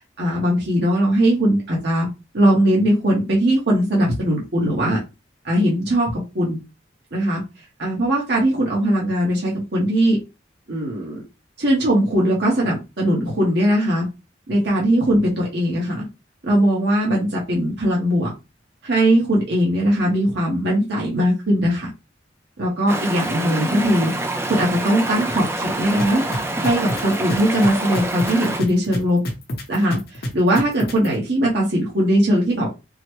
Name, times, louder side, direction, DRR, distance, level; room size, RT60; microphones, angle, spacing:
voice 1, 0.2-2.1 2.3-5.0 5.4-6.6 7.1-7.4 7.8-10.2 10.7-11.2 11.6-14.1 14.5-16.1 16.4-18.3 18.8-21.9 22.6-24.1 24.5-26.2 26.6-29.2 29.7-32.7, equal, 60° right, -3 dB, 1.0 m, -20 dB
Stream, 22.9-28.6, right 2 dB, 15° right, 0.4 m, -26 dB
sound 1, 26.0-31.1, equal, 55° left, 0.8 m, -27 dB
3.8 x 2.1 x 3.0 m, 0.26 s
head